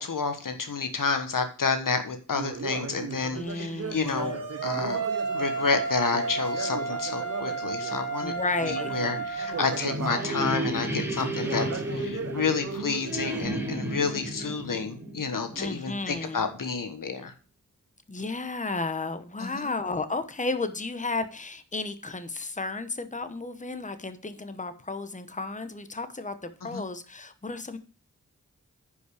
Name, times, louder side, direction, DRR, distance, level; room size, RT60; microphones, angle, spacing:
voice 1, 0.0-5.1 5.3-8.3 8.6-17.3 19.4-19.7 26.7-26.8, left 5 dB, 80° left, 1.4 m, -30 dB
Conversation, 2.3-8.1 8.6-13.5, right 6 dB, 50° right, 0.6 m, -37 dB
voice 2, 3.3-4.3 8.2-8.9 15.5-16.4 18.1-27.8, left 3 dB, 25° left, 1.1 m, -33 dB
sound 1, 4.1-9.8, right 4 dB, 80° right, 1.8 m, -32 dB
sound 2, 9.3-16.0, equal, 5° right, 2.3 m, -33 dB
9.9 x 5.4 x 4.9 m
cardioid pair, 45°, 32 cm